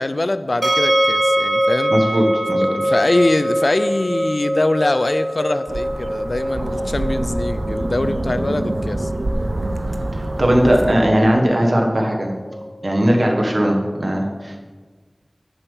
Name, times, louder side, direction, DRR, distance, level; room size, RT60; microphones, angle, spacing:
voice 1, 0.0-1.9 2.6-9.1, left 2 dB, 75° left, 12 dB, 0.4 m, -22 dB
sound 1, 0.6-13.6, equal, 50° right, 1.1 m, -24 dB
voice 2, 1.9-2.9 10.4-12.3 12.8-14.6, equal, 65° right, 0 dB, 1.4 m, -18 dB
sound 2, 5.7-10.9, right 2 dB, 85° right, 0.5 m, -26 dB
6.9 x 5.4 x 7.2 m, 1.4 s
wide cardioid pair, 40°, 0 cm